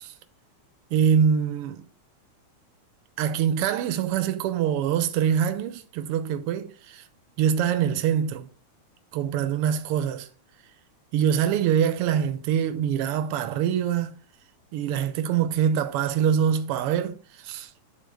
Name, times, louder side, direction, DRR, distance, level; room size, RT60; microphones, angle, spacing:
voice 1, 0.9-1.8 3.2-7.0 7.4-8.5 9.1-10.3 11.1-14.2 14.7-17.7, right 8 dB, 70° right, 1.4 m, -24 dB
10.0 x 4.0 x 3.4 m
omnidirectional pair, 3.4 m